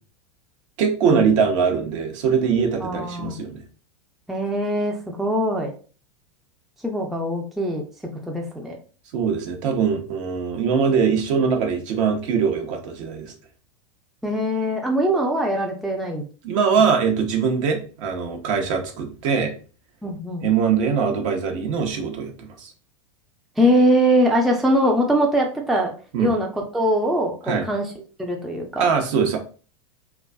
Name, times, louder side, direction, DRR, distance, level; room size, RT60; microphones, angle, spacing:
voice 1, 0.8-3.6 9.1-13.3 16.4-19.5 20.4-22.7 26.1-26.3 27.5-27.6 28.8-29.4, right 6 dB, 60° right, 4 dB, 0.7 m, -22 dB
voice 2, 2.8-3.4 4.3-5.7 6.8-7.8 8.3-8.8 14.2-16.2 20.0-20.5 23.6-25.9 26.2-27.9 28.2-28.9, equal, ahead, 0 dB, 0.4 m, -22 dB
2.5 x 2.2 x 2.2 m, 0.38 s
hypercardioid pair, 105°, 18 cm